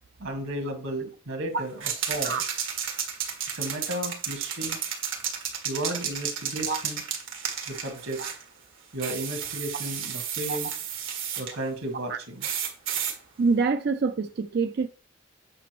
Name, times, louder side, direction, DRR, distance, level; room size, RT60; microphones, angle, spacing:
voice 1, 0.2-1.7 2.1-2.4 3.5-4.8 5.6-7.0 7.7-8.2 8.9-10.7 11.4-12.4, right 1 dB, 90° right, 1.9 m, -33 dB
sound 1, 1.8-8.4 9.0-11.5 12.4-13.2, right 8 dB, 70° right, 1.7 m, -32 dB
voice 2, 13.4-14.9, right 4 dB, 50° right, 0.3 m, -25 dB
8.7 x 5.1 x 3.1 m
head